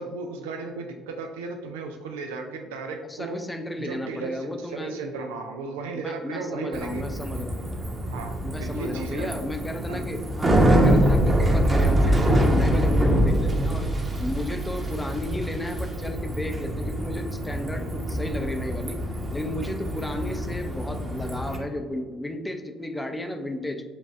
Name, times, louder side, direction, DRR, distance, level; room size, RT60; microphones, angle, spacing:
voice 1, 0.0-3.4 3.8-7.0 8.1-8.3 8.6-9.3 9.9-10.0, right 4 dB, 85° right, 4 dB, 0.4 m, -35 dB
voice 2, 3.1-4.9 5.9-7.6 8.4-13.9 14.2-19.0 19.3-23.8, left 1 dB, 15° left, 6 dB, 0.6 m, -33 dB
Bicycle, 6.7-21.6, right 1 dB, 30° right, 0.9 m, -24 dB
7.0 x 2.4 x 2.6 m, 1.4 s
hypercardioid pair, 60°, 0 cm